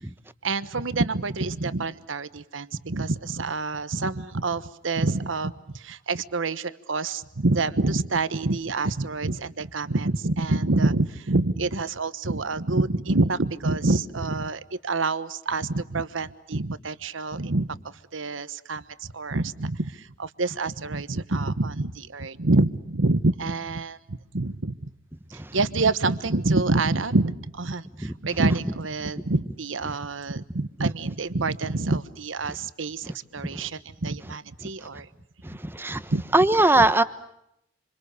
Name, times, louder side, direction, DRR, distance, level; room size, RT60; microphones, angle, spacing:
voice 1, 0.4-17.8 18.1-18.8 19.1-24.9 25.5-35.1 36.1-36.2, right 2 dB, 80° right, 14 dB, 1.2 m, -27 dB
voice 2, 35.4-36.0 36.3-37.0, right 2 dB, 10° right, 12 dB, 1.1 m, -19 dB
27.5 x 27.0 x 6.8 m, 0.78 s
head